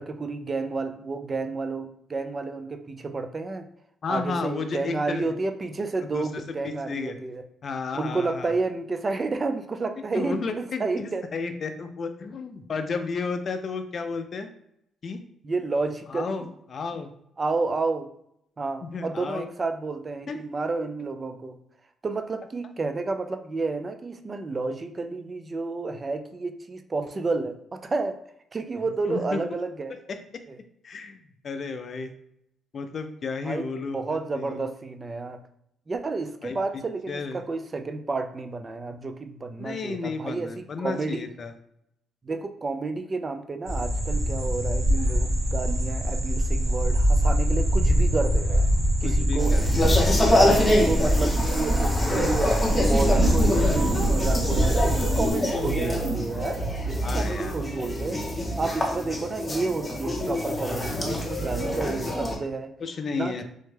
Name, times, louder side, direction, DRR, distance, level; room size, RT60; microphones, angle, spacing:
voice 1, 0.0-3.7 4.1-7.4 7.9-11.2 15.4-16.5 17.4-18.1 18.6-21.6 22.0-28.2 28.5-30.0 30.5-30.6 33.4-35.4 35.9-41.3 42.2-48.7 49.0-49.6 49.9-58.3 58.6-62.7 63.1-63.4, right 3 dB, 30° right, 7 dB, 0.4 m, -31 dB
voice 2, 4.0-5.3 6.1-7.2 7.6-8.6 10.1-14.5 15.0-15.2 16.1-17.1 18.8-19.5 20.3-20.4 29.0-29.6 29.9-30.2 30.8-31.2 31.4-32.1 32.7-34.6 36.4-37.4 39.6-41.5 49.0-50.1 57.0-57.5 62.8-63.4, left 4 dB, 50° left, 8 dB, 0.4 m, -33 dB
sound 1, 43.7-55.3, equal, 55° right, 1.3 m, -23 dB
sound 2, 49.4-62.4, left 1 dB, 20° left, 0.8 m, -25 dB
3.4 x 2.1 x 3.2 m, 0.73 s
cardioid pair, 90°, 0 cm